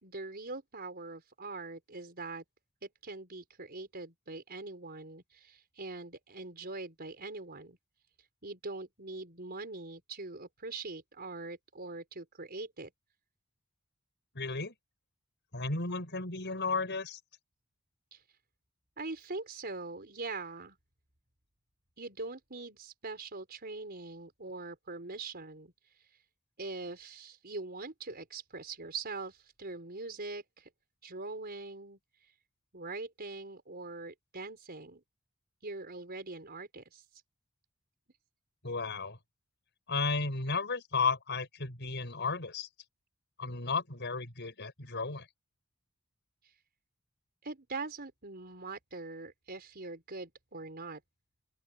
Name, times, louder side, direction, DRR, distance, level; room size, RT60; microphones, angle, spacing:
voice 1, 0.0-2.4 2.8-7.8 8.4-12.9 18.1-18.2 19.0-20.8 22.0-26.2 26.6-30.7 31.0-32.3 32.7-35.0 35.6-37.2 46.4-46.5 47.4-51.0, right 3 dB, 50° right, 4.8 m, -43 dB
voice 2, 14.3-14.7 15.5-17.2 38.6-39.2 39.9-42.7 43.4-45.3, left 4 dB, 55° left, 5.8 m, -33 dB
open air
head